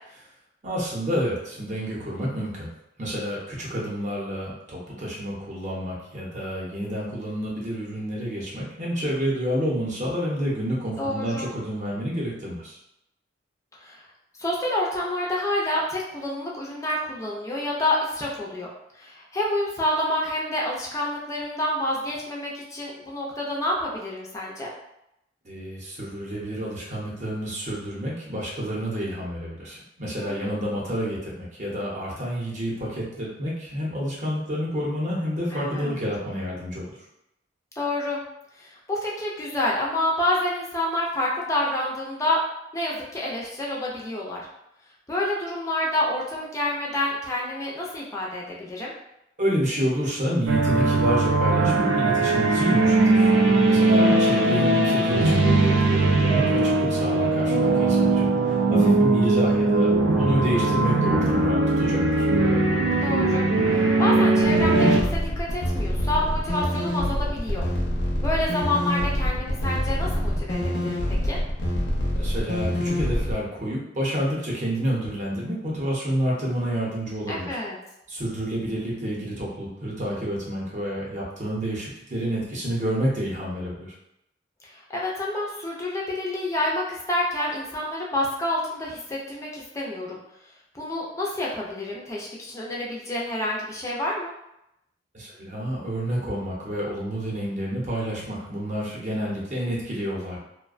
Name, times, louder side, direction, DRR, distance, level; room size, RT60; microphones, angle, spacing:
voice 1, 0.6-2.7 3.0-12.8 25.4-37.0 49.4-53.3 53.7-62.3 72.1-77.6 78.1-83.9 95.1-100.4, equal, 40° right, -4 dB, 0.7 m, -29 dB
voice 2, 11.0-11.5 13.8-14.0 14.4-18.7 18.9-24.7 30.2-30.6 35.5-36.0 37.8-38.2 38.6-42.4 42.7-44.5 45.1-48.9 53.8-54.2 63.0-63.4 63.7-67.7 68.2-71.4 77.3-77.8 84.7-90.2 90.7-94.3, left 1 dB, 15° left, -4 dB, 0.4 m, -28 dB
sound 1, 50.5-65.0, right 2 dB, 80° right, 0.4 m, -20 dB
sound 2, 64.5-73.3, left 1 dB, 65° left, 0.6 m, -26 dB
2.4 x 2.1 x 2.4 m, 0.83 s
head